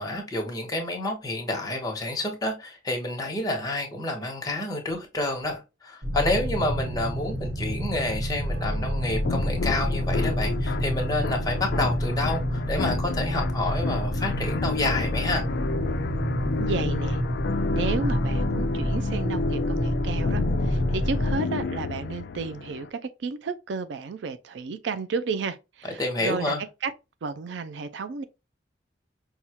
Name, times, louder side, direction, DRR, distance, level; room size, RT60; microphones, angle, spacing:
voice 1, 0.0-15.4 26.0-26.6, left 2 dB, 20° left, 1.1 m, -29 dB
sound 1, 6.0-21.4, equal, 55° right, 1.1 m, -28 dB
sound 2, 9.2-22.9, left 4 dB, 60° left, 0.3 m, -32 dB
voice 2, 16.6-17.2 17.7-26.5 26.8-26.9 27.2-28.2, right 4 dB, 75° right, 0.4 m, -32 dB
5.5 x 2.3 x 2.9 m
head